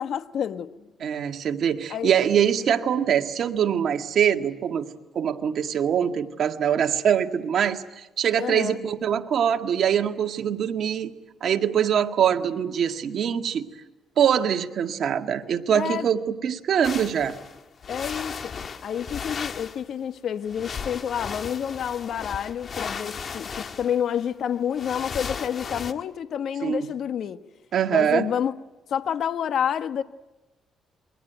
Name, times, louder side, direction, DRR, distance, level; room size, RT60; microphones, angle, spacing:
voice 1, 0.0-0.9 1.9-2.1 8.4-8.8 15.7-16.1 17.9-18.5 18.8-27.4 27.9-28.5 28.9-30.0, left 8 dB, 65° left, 1.2 m, -29 dB
voice 2, 1.0-4.9 5.1-11.1 11.4-13.7 14.2-17.4 26.6-26.9 27.7-28.3, right 8 dB, 65° right, 1.9 m, -23 dB
sound 1, 16.8-19.8 20.4-25.9, left 6 dB, 45° left, 1.7 m, -35 dB
27.5 x 22.5 x 9.2 m
cardioid pair, 90°, 0 cm